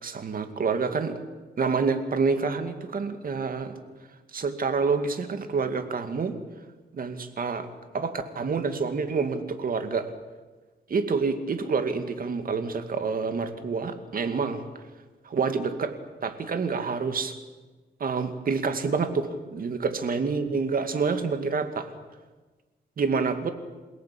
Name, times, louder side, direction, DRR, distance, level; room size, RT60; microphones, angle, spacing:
voice 1, 0.0-1.2 1.6-3.8 4.3-6.3 6.9-7.7 7.9-10.1 10.9-14.6 15.2-15.9 16.2-17.4 18.0-21.9 23.0-23.5, right 5 dB, 45° right, 8 dB, 2.5 m, -27 dB
28.0 x 17.5 x 8.7 m, 1.3 s
cardioid pair, 115°, 20 cm